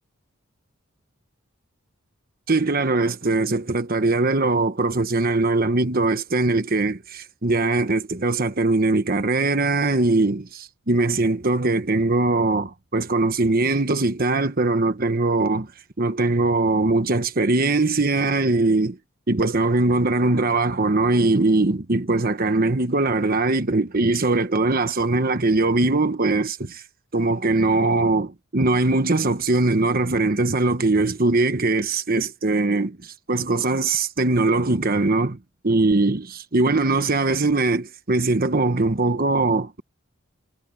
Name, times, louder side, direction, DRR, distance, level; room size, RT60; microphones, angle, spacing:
voice 1, 2.5-15.7 16.0-19.0 19.3-26.8 27.1-35.4 35.6-39.8, right 2 dB, 45° right, 1.2 m, -21 dB
head